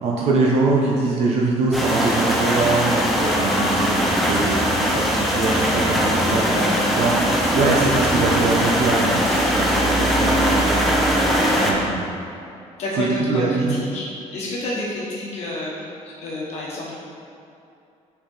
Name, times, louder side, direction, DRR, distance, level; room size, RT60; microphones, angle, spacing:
voice 1, 0.0-10.9 11.7-12.1 13.0-13.7, right 3 dB, 60° right, -3 dB, 0.8 m, -23 dB
sound 1, 1.7-11.7, equal, ahead, 0.7 m, -20 dB
voice 2, 5.9-6.7 11.2-11.8 12.8-17.0, left 2 dB, 60° left, -5 dB, 1.2 m, -30 dB
6.7 x 5.0 x 3.9 m, 2.6 s
cardioid pair, 170°, 12 cm